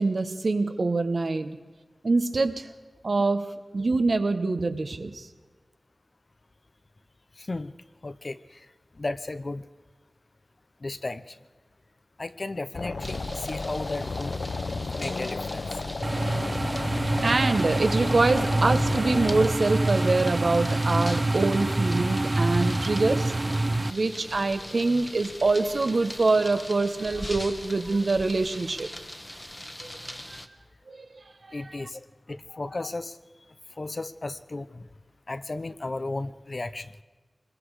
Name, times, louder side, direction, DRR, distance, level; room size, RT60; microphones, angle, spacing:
voice 1, 0.0-1.6 2.0-2.7 3.0-5.3 17.2-23.3 23.9-28.9 29.8-29.9 30.3-30.4 30.9-31.2 31.6-31.7, right 3 dB, 65° right, 8 dB, 1.2 m, -25 dB
voice 2, 7.4-7.7 8.0-8.7 9.0-9.7 10.8-11.4 12.2-14.4 15.0-15.6 31.5-33.2 33.8-34.9 35.3-37.0, left 2 dB, 50° left, 12 dB, 0.8 m, -34 dB
sound 1, 12.7-19.5, left 3 dB, 80° left, 0.8 m, -33 dB
sound 2, 13.0-30.5, equal, 10° left, 1.3 m, -41 dB
sound 3, 16.0-23.9, right 2 dB, 40° right, 0.5 m, -26 dB
24.5 x 21.5 x 4.9 m, 1.3 s
wide cardioid pair, 70°, 0 cm